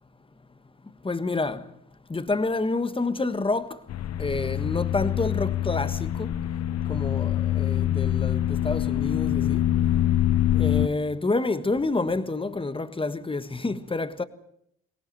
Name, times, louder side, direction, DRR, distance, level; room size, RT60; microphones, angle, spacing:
voice 1, 1.0-1.6 2.1-3.7 4.2-6.3 6.9-9.6 10.5-14.2, left 3 dB, 15° left, 1.5 m, -28 dB
sound 1, 3.9-10.9, left 12 dB, 55° left, 0.8 m, -25 dB
23.0 x 18.5 x 7.8 m
cardioid pair, 90°, 30 cm